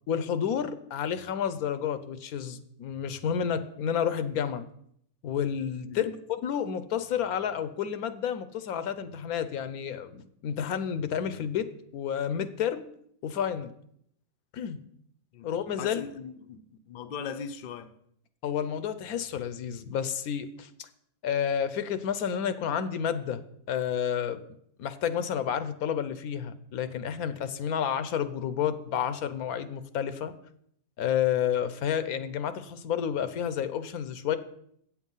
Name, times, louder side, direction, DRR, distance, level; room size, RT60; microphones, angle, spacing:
voice 1, 0.1-4.6 5.2-6.1 6.4-11.7 11.9-12.9 13.2-13.7 14.5-14.8 15.4-16.0 18.4-20.9 21.2-23.4 23.7-24.4 24.8-30.3 31.0-34.4, left 8 dB, 80° left, 1.2 m, -30 dB
voice 2, 5.9-6.2 15.3-15.5 15.8-18.0, left 6 dB, 50° left, 0.6 m, -39 dB
8.4 x 7.3 x 5.5 m
omnidirectional pair, 1.5 m